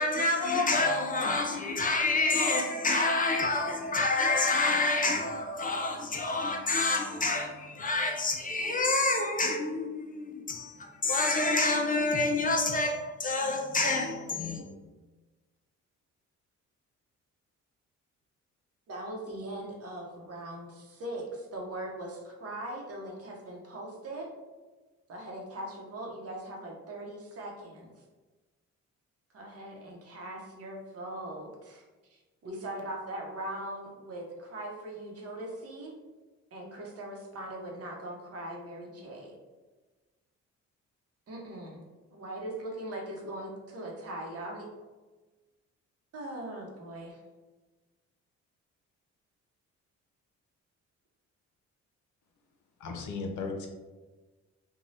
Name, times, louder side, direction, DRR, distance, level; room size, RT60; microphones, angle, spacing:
voice 1, 0.0-14.7, left 3 dB, 30° left, 2 dB, 0.4 m, -28 dB
voice 2, 18.9-24.3 25.1-27.9 29.3-31.8 32.1-35.9 36.5-39.4 41.3-41.8 42.1-44.7 46.1-47.2, right 1 dB, 50° right, 0 dB, 0.8 m, -40 dB
voice 3, 52.8-53.7, left 4 dB, 75° left, 3 dB, 0.6 m, -35 dB
2.6 x 2.2 x 3.1 m, 1.2 s
cardioid pair, 90°, 30 cm